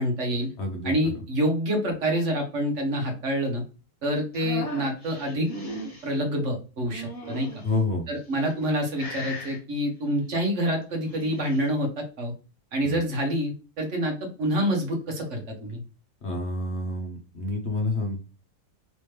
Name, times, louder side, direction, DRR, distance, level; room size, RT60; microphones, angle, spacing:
voice 1, 0.0-0.5 0.8-3.6 4.0-5.5 6.0-7.5 8.1-12.3 12.7-15.8, equal, 50° right, 3 dB, 1.3 m, -27 dB
voice 2, 0.6-0.9 7.6-8.1 12.8-12.9 16.2-18.2, left 2 dB, 50° left, 2 dB, 0.9 m, -28 dB
sound 1, 4.3-6.1 6.9-7.7 8.4-8.7 9.0-9.6 10.9-11.7, equal, 25° left, 1.0 m, -38 dB
3.4 x 3.0 x 3.2 m, 0.34 s
omnidirectional pair, 1.7 m